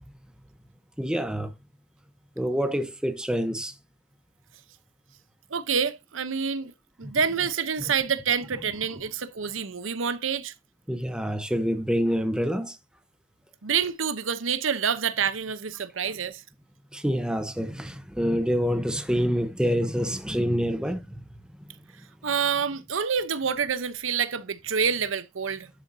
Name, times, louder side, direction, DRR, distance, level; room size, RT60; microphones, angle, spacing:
voice 1, 1.0-1.5 2.4-3.7 7.0-7.1 10.9-12.8 16.0-16.2 16.9-21.9, equal, 5° right, 0.9 m, -27 dB
voice 2, 5.5-6.7 7.0-10.5 13.6-16.4 22.2-25.7, right 6 dB, 90° right, 0.8 m, -27 dB
11.0 x 7.1 x 2.7 m
head